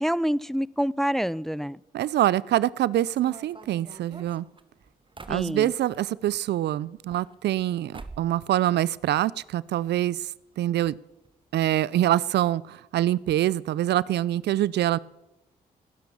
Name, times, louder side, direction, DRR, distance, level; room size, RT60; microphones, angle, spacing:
voice 1, 0.0-1.8 5.3-5.7, equal, ahead, 22 dB, 0.5 m, -27 dB
voice 2, 1.9-4.5 5.3-10.3 10.6-11.0 11.5-15.0, right 13 dB, 70° right, 22 dB, 0.5 m, -25 dB
sound 1, 3.1-6.0 6.9-7.7 7.9-8.4 8.7-9.5 9.8-9.9 10.1-10.2 10.8-11.0 11.2-11.4, right 3 dB, 30° right, 1.4 m, -46 dB
18.5 x 10.5 x 7.0 m, 0.96 s
supercardioid pair, 50°, 18 cm